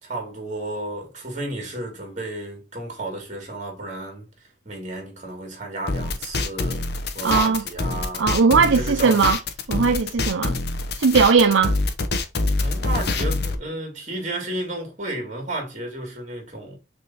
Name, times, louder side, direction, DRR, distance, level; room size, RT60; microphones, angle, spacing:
voice 1, 0.0-4.3 4.6-6.9 7.1-9.2 12.6-16.8, right 1 dB, 40° right, 2.6 m, -32 dB
sound 1, 5.9-13.5, left 2 dB, 55° left, 0.8 m, -25 dB
voice 2, 7.2-7.6 8.2-9.4 9.7-10.5 11.0-11.8, right 5 dB, 85° right, 0.5 m, -18 dB
6.2 x 3.6 x 4.2 m
head